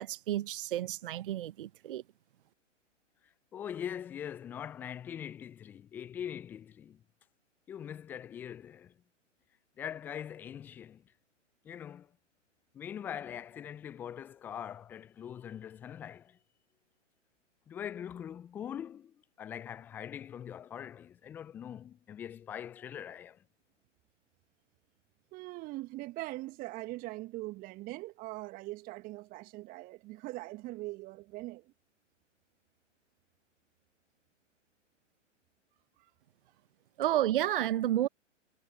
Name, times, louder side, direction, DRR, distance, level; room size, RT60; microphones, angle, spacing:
voice 1, 0.0-2.0 37.0-38.1, right 13 dB, 45° right, 1.1 m, -31 dB
voice 2, 3.5-7.0 7.7-8.9 9.8-11.0 11.6-12.1 12.7-16.4 17.7-23.4, left 9 dB, 5° left, 0.4 m, -42 dB
voice 3, 25.3-31.7 36.0-36.1, right 19 dB, 25° right, 1.7 m, -42 dB
figure-of-eight pair, 120°, 37 cm